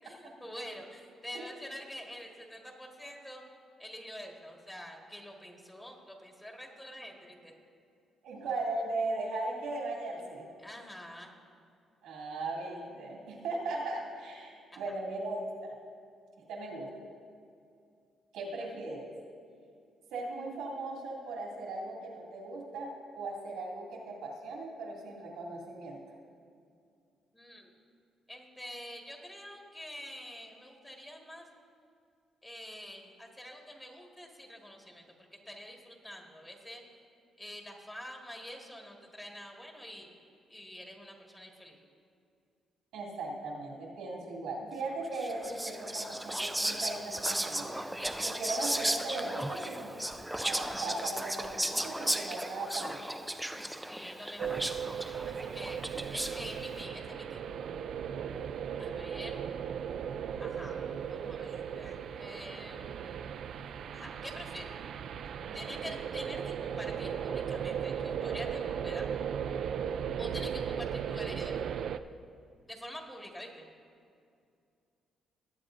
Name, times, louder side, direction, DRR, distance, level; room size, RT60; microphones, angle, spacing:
voice 1, 0.0-3.4 3.8-7.5 10.6-11.3 14.7-14.8 27.3-27.7 28.3-31.4 32.4-35.1 35.4-36.8 37.4-40.1 40.5-41.8 53.9-54.6 55.2-55.8 56.1-57.5 58.8-59.4 60.4-60.8 61.1-63.3 63.9-64.7 65.2-69.1 70.2-71.5 72.7-73.6, equal, 10° left, 0 dB, 1.7 m, -46 dB
voice 2, 8.2-10.5 12.0-15.7 16.5-16.9 18.3-19.1 20.1-26.0 42.9-47.8 48.2-50.0 50.4-53.3 55.9-56.0 58.7-59.0 65.5-65.6, right 2 dB, 90° right, -2 dB, 2.2 m, -38 dB
Whispering, 45.1-56.6, right 1 dB, 5° right, 0.4 m, -35 dB
sound 1, 54.4-72.0, right 8 dB, 65° right, 0.3 m, -37 dB
19.0 x 8.5 x 2.5 m, 2.4 s
cardioid pair, 90°, 0 cm